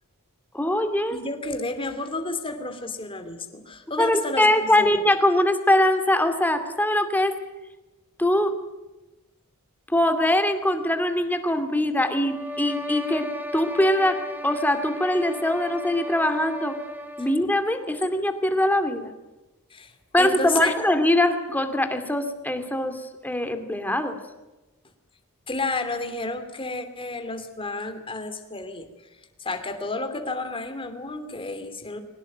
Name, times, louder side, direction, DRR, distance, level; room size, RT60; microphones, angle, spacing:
voice 1, 0.5-1.2 4.0-7.4 8.2-8.5 9.9-14.2 14.4-16.7 17.2-19.1 20.1-24.2, left 1 dB, 10° left, 7 dB, 2.4 m, -22 dB
voice 2, 1.1-5.1 19.7-19.9 20.2-20.7 25.5-28.9 29.4-32.0, left 3 dB, 25° left, 8 dB, 2.7 m, -31 dB
sound 1, 12.1-17.5, left 1 dB, 10° right, 2.6 m, -35 dB
22.5 x 19.5 x 9.1 m, 1.0 s
head